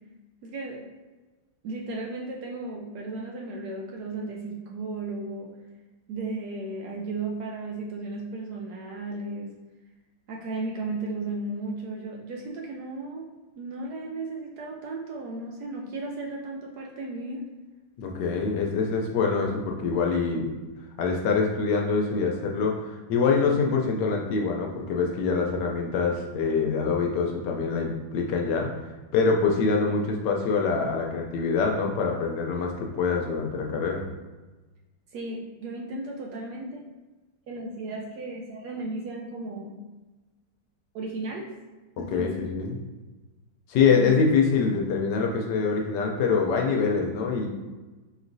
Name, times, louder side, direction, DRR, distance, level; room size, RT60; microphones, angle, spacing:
voice 1, 0.4-0.8 1.6-5.5 6.1-9.5 10.3-13.3 13.6-17.4 35.1-36.8 37.5-39.8 40.9-41.5 42.0-42.5 43.9-44.1, right 2 dB, 70° right, -1 dB, 1.0 m, -35 dB
voice 2, 18.0-20.5 21.0-34.0 42.1-42.8 43.7-47.5, left 5 dB, 75° left, 1 dB, 1.1 m, -25 dB
5.0 x 3.1 x 2.6 m, 1.2 s
omnidirectional pair, 2.1 m